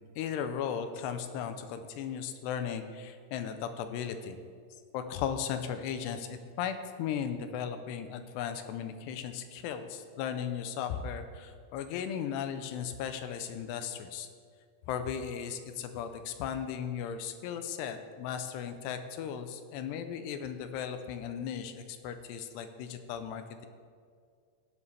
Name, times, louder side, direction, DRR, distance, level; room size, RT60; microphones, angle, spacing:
voice 1, 0.2-4.4 4.9-14.3 14.9-23.7, left 8 dB, 80° left, 8 dB, 2.8 m, -36 dB
15.0 x 9.7 x 3.4 m, 2.1 s
omnidirectional pair, 4.9 m